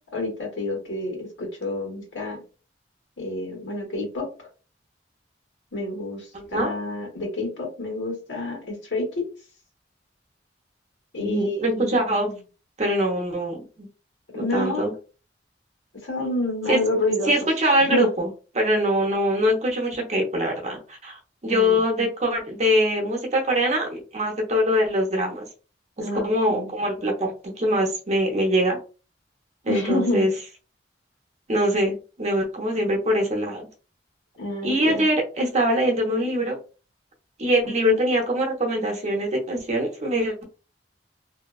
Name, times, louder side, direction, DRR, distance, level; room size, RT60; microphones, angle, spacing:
voice 1, 0.1-2.4 3.2-4.5 5.7-9.3 11.1-12.4 14.3-14.9 16.0-17.3 17.8-18.1 21.5-22.1 26.0-26.7 29.7-30.3 34.4-35.1 37.8-38.0, left 2 dB, 85° left, 0 dB, 1.3 m, -29 dB
voice 2, 6.3-6.7 11.2-12.3 12.8-13.9 14.3-14.9 16.7-16.8 17.2-18.3 18.5-25.4 26.2-28.8 29.6-30.3 31.5-33.7 34.6-36.6 37.4-40.4, equal, 40° right, 1 dB, 0.7 m, -23 dB
2.7 x 2.2 x 2.3 m, 0.34 s
head